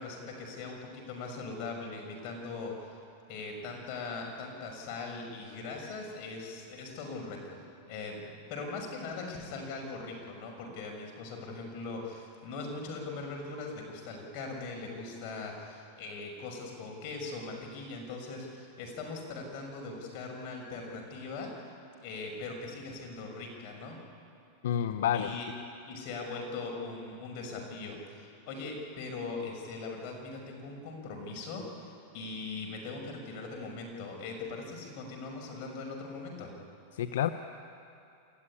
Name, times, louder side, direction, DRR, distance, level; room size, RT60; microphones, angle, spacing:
voice 1, 0.0-3.0 3.3-7.6 7.9-21.5 22.0-24.0 25.1-25.5 25.8-36.5, left 3 dB, 50° left, 2 dB, 5.8 m, -40 dB
voice 2, 24.6-25.3 36.9-37.3, left 10 dB, 80° left, 9 dB, 0.7 m, -28 dB
28.0 x 14.0 x 9.9 m, 2.6 s
supercardioid pair, 140°, 0 cm